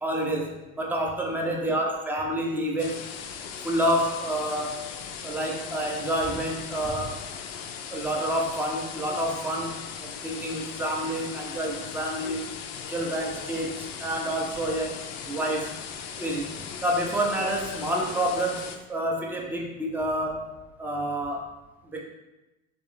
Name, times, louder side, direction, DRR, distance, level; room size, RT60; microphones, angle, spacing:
voice 1, 0.0-3.0 3.6-4.9 5.2-7.2 7.9-12.5 12.9-15.8 16.2-16.5 16.8-21.4 21.9-22.0, right 1 dB, 5° right, -1 dB, 0.6 m, -28 dB
sound 1, 2.8-18.8, left 7 dB, 40° left, 0.5 m, -38 dB
3.4 x 2.9 x 3.4 m, 1.0 s
figure-of-eight pair, 65°, 41 cm